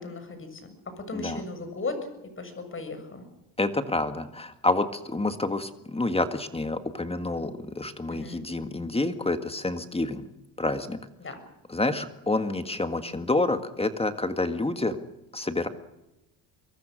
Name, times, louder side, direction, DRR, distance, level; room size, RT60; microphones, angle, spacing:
voice 1, 0.0-2.0 2.4-3.2 8.1-8.4 11.2-11.4, left 3 dB, 30° left, 8 dB, 6.9 m, -36 dB
voice 2, 3.6-10.2 10.6-11.0 11.7-15.0 15.3-15.7, left 2 dB, 15° left, 9 dB, 1.8 m, -28 dB
25.0 x 22.5 x 6.5 m, 0.94 s
cardioid pair, 100°, 42 cm